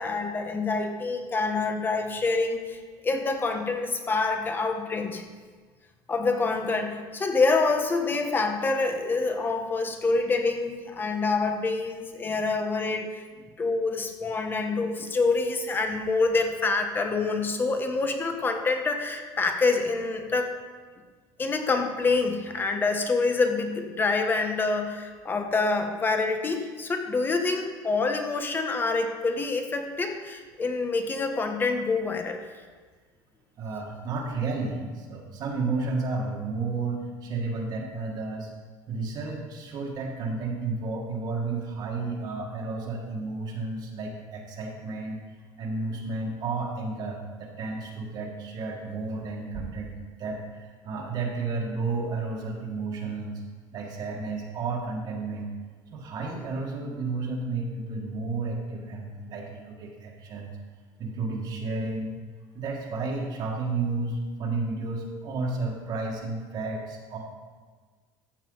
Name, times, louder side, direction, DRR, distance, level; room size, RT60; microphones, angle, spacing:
voice 1, 0.0-2.8 3.0-5.2 6.1-13.2 13.6-20.5 21.4-32.4, left 3 dB, 20° left, 6 dB, 1.1 m, -26 dB
voice 2, 33.6-38.5 38.9-45.2 45.6-53.4 53.7-55.5 55.9-60.5 61.0-62.2 62.5-67.2, right 3 dB, 45° right, -1 dB, 1.7 m, -32 dB
13.5 x 7.2 x 3.9 m, 1.5 s
cardioid pair, 130°, 9 cm